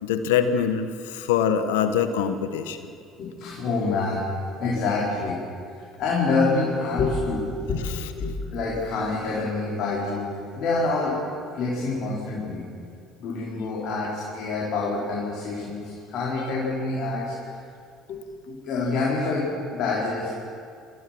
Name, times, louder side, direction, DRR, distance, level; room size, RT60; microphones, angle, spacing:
voice 1, 0.0-2.8, left 8 dB, 85° left, 10 dB, 1.1 m, -24 dB
voice 2, 3.2-4.3 4.6-5.4 5.7-7.9 8.2-11.2 11.5-12.7 13.2-17.6 18.1-18.2 18.5-20.3, left 3 dB, 60° left, -5 dB, 4.9 m, -27 dB
26.0 x 16.0 x 6.2 m, 2.3 s
hypercardioid pair, 65°, 0 cm